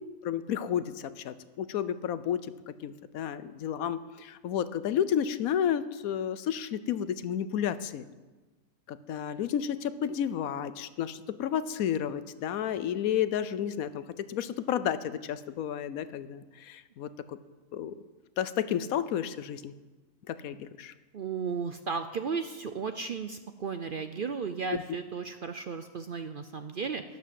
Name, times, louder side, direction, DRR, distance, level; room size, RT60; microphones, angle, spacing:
voice 1, 0.2-2.5 2.8-8.0 8.9-17.4 17.7-17.9 18.4-19.7 20.3-20.9 24.7-24.8, left 9 dB, 80° left, 14 dB, 1.1 m, -31 dB
voice 2, 21.1-27.0, right 5 dB, 55° right, 9 dB, 0.6 m, -34 dB
12.0 x 10.5 x 7.6 m, 1.2 s
omnidirectional pair, 1.5 m